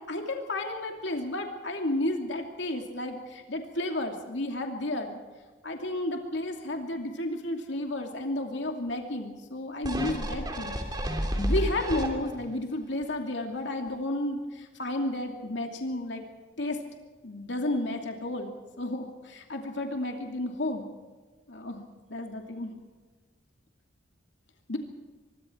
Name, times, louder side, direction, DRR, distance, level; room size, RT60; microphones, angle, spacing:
voice 1, 0.1-5.2 5.6-11.0 11.5-16.2 16.6-16.8 17.2-20.9 21.5-22.7 24.7-24.8, left 1 dB, 75° left, 3 dB, 2.6 m, -32 dB
sound 1, 9.8-12.5 13.0-13.1, equal, 20° right, 3.2 m, -30 dB
25.0 x 23.0 x 4.5 m, 1.3 s
head